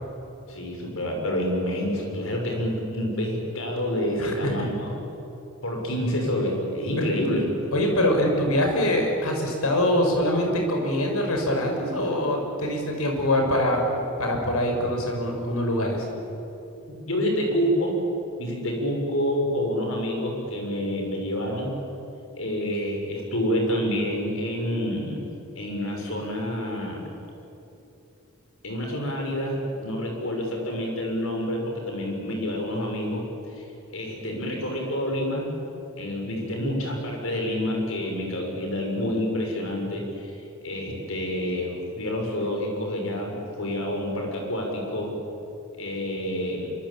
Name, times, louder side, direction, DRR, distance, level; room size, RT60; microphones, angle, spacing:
voice 1, 0.5-4.9 5.6-7.5 17.1-17.9 18.4-21.7 22.4-25.2 25.5-27.0 28.6-33.2 33.6-35.5 36.0-40.3 40.6-45.1 45.8-46.7, equal, 65° left, 1 dB, 6.9 m, -28 dB
voice 2, 4.2-4.7 7.7-13.8 14.2-16.1, left 1 dB, 90° left, 2 dB, 6.0 m, -24 dB
25.5 x 25.0 x 8.9 m, 2.8 s
head